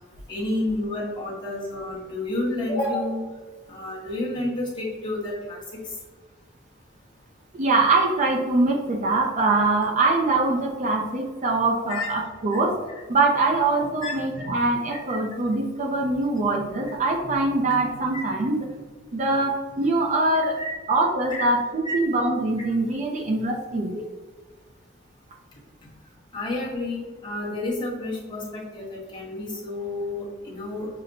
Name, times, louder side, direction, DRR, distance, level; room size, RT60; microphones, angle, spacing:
voice 1, 0.3-3.2 3.7-5.6 5.8-6.0 11.9-12.1 14.0-14.5 20.3-20.7 21.3-21.4 21.8-21.9 26.3-30.9, left 2 dB, 25° left, -6 dB, 1.1 m, -30 dB
voice 2, 7.5-12.8 13.1-18.7 19.1-20.6 20.9-24.1, right 2 dB, 40° right, 0 dB, 0.4 m, -23 dB
5.8 x 2.1 x 2.5 m, 1.4 s
head